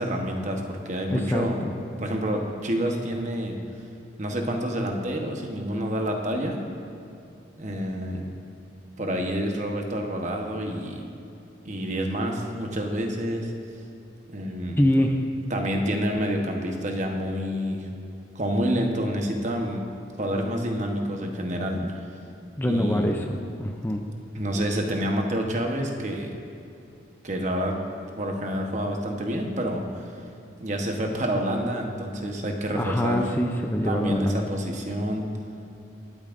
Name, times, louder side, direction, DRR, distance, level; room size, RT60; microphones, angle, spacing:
voice 1, 0.0-1.6 2.0-3.5 4.2-6.6 7.6-8.3 9.0-11.1 11.6-13.5 14.3-14.8 15.5-17.9 18.3-19.8 20.2-21.8 22.7-23.1 24.3-26.3 27.2-27.8 28.2-30.0 30.6-33.2 33.8-35.2, equal, 40° right, 2 dB, 1.0 m, -28 dB
voice 2, 1.1-1.7 14.8-15.3 21.7-21.9 22.6-24.0 32.7-34.4, left 1 dB, 10° left, 3 dB, 0.5 m, -25 dB
21.5 x 8.7 x 2.6 m, 2.7 s
head